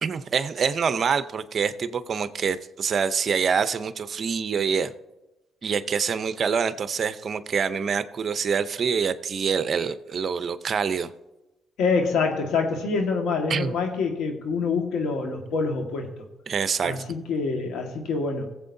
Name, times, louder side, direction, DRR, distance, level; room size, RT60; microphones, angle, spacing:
voice 1, 0.0-4.9 5.6-11.1 13.5-13.7 16.5-17.0, right 6 dB, 50° right, 12 dB, 0.6 m, -26 dB
voice 2, 11.8-16.1 16.8-18.5, left 4 dB, 85° left, 3 dB, 1.7 m, -26 dB
19.0 x 7.7 x 2.7 m, 1.0 s
cardioid pair, 90°, 0 cm